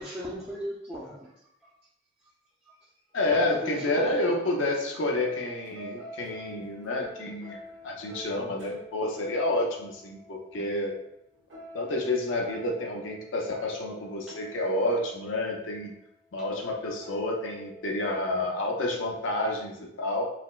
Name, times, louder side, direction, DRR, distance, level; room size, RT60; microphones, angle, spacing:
voice 1, 0.0-1.7 2.7-2.8 3.4-4.2 14.3-14.4, right 1 dB, 10° right, -7 dB, 0.4 m, -38 dB
voice 2, 3.1-7.6 7.8-10.9 11.7-15.9 16.3-20.2, left 2 dB, 90° left, 0 dB, 0.6 m, -29 dB
sound 1, 3.4-18.8, equal, 85° right, 0.9 m, -47 dB
4.0 x 2.0 x 2.3 m, 0.79 s
head